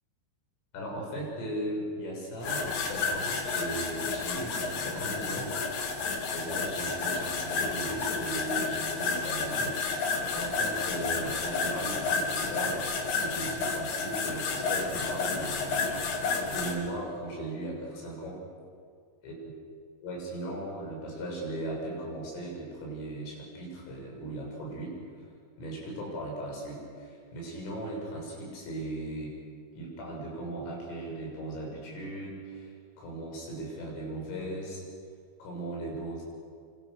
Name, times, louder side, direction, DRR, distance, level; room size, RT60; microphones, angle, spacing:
voice 1, 0.7-5.5 6.3-12.8 13.2-18.4 19.2-19.5 20.0-25.3 25.6-29.4 29.7-34.8 35.4-36.2, right 1 dB, 85° left, -1 dB, 9.3 m, -38 dB
sound 1, 2.4-16.7, left 4 dB, 60° left, 4.1 m, -31 dB
27.5 x 25.5 x 6.7 m, 2.1 s
omnidirectional pair, 5.6 m